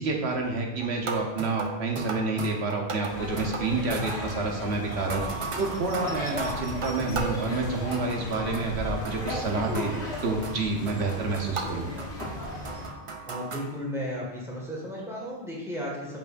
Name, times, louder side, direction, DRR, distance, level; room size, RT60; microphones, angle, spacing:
voice 1, 0.0-5.2 5.6-9.9 10.2-11.9, right 3 dB, 80° right, 2 dB, 1.2 m, -29 dB
sound 1, 0.8-8.8 9.0-13.7, right 4 dB, 40° right, 0.4 m, -37 dB
sound 2, 3.0-12.9, left 2 dB, 80° left, 1.5 m, -36 dB
voice 2, 13.3-16.2, equal, 5° right, -5 dB, 1.5 m, -34 dB
7.5 x 5.2 x 2.5 m, 1.0 s
omnidirectional pair, 1.1 m